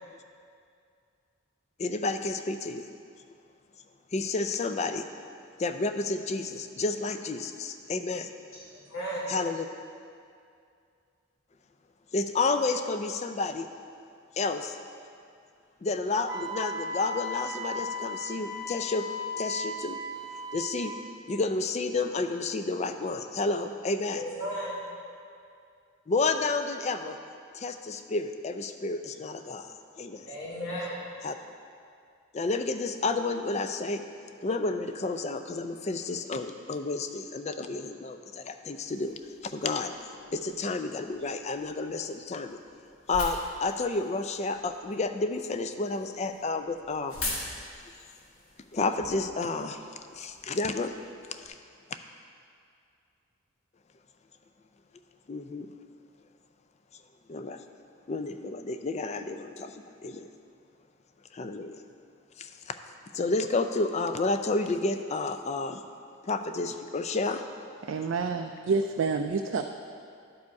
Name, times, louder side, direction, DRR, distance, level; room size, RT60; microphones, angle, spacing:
voice 1, 1.8-2.9 4.1-5.0 5.6-8.3 9.3-9.7 12.1-13.7 14.3-14.8 15.8-19.1 19.4-20.0 20.5-20.9 21.3-24.2 26.1-27.2 27.5-30.3 31.2-31.4 32.3-34.0 34.4-39.9 40.3-42.6 43.1-47.2 48.7-49.8 50.1-50.9 51.3-51.5 55.3-55.7 57.3-57.6 58.1-60.3 61.3-61.8 62.4-62.8 63.1-65.8 66.2-67.4, left 3 dB, 30° left, 8 dB, 0.3 m, -30 dB
voice 2, 8.5-9.3 24.1-24.8 30.2-31.0, equal, 70° left, -7 dB, 2.0 m, -35 dB
Wind instrument woodwind instrument, 16.2-21.1, left 1 dB, 15° right, 0.6 m, -36 dB
sound 1, 38.8-51.5, left 2 dB, 85° left, 1.5 m, -44 dB
voice 3, 67.8-69.6, right 4 dB, 65° right, 4 dB, 0.3 m, -28 dB
11.5 x 5.0 x 4.7 m, 2.4 s
head